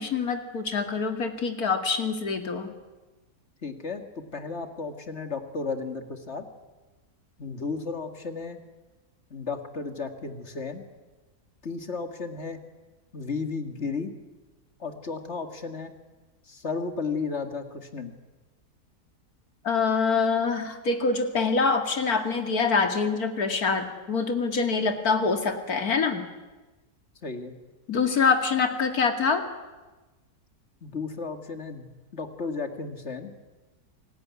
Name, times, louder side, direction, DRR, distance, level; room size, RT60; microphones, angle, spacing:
voice 1, 0.0-2.7 19.6-26.3 27.9-29.4, left 5 dB, 70° left, 6 dB, 2.7 m, -25 dB
voice 2, 3.6-6.4 7.4-8.6 9.3-10.8 11.6-12.6 13.1-14.1 14.8-15.9 16.5-18.1 27.2-27.5 30.8-33.3, left 4 dB, 45° left, 7 dB, 2.3 m, -34 dB
27.0 x 19.0 x 9.6 m, 1.2 s
omnidirectional pair, 1.7 m